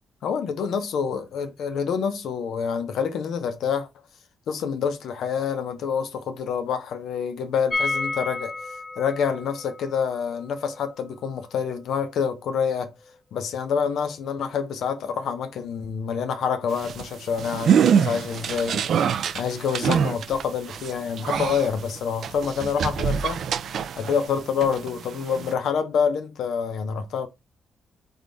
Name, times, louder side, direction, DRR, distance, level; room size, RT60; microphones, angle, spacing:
voice 1, 0.2-3.9 4.5-8.6 9.0-12.9 13.3-19.1 19.3-23.4 24.0-27.3, left 6 dB, 75° left, 0.7 m, -27 dB
sound 1, 7.7-13.5 13.7-13.8 14.1-14.2, left 3 dB, 20° left, 0.4 m, -33 dB
sound 2, 16.7-24.3 24.6-25.5, right 7 dB, 60° right, 0.3 m, -25 dB
3.6 x 3.5 x 3.9 m
cardioid pair, 140°, 0 cm